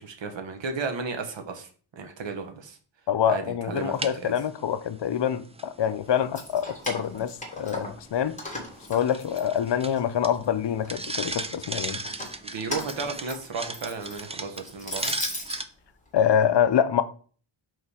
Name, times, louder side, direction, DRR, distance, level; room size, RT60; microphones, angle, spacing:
voice 1, 0.0-1.7 2.0-2.8 3.3-4.3 12.4-15.1, right 4 dB, 60° right, 1.0 m, -34 dB
voice 2, 3.1-8.4 8.9-12.0 16.1-17.0, left 9 dB, 60° left, 0.6 m, -25 dB
sound 1, 3.8-15.6, right 2 dB, 15° right, 0.4 m, -38 dB
Keys jangling, 6.2-8.1 8.4-10.0 10.4-11.2 11.9-15.6, left 1 dB, 15° left, 1.5 m, -37 dB
5.3 x 3.9 x 4.8 m
wide cardioid pair, 160°, 49 cm